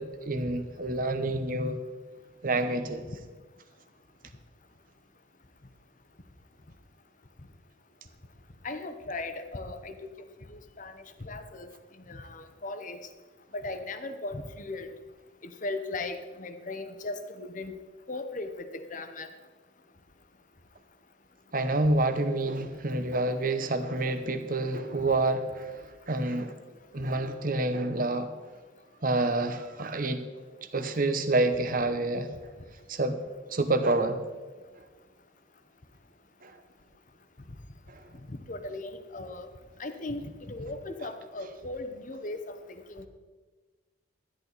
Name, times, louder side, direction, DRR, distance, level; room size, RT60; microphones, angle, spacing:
voice 1, 0.0-1.8 2.4-3.0 21.5-26.5 26.9-28.3 29.0-30.2 30.7-32.3 32.9-33.2 33.5-34.2 36.4-36.5 37.9-38.1, right 2 dB, 45° right, 9 dB, 0.9 m, -28 dB
voice 2, 8.6-9.9 10.5-10.9 11.2-11.7 12.1-13.0 13.5-14.9 15.6-17.7 18.1-19.3 38.3-39.5 39.8-42.5 42.9-43.1, left 2 dB, 40° left, 8 dB, 0.9 m, -37 dB
13.0 x 10.5 x 4.1 m, 1.3 s
head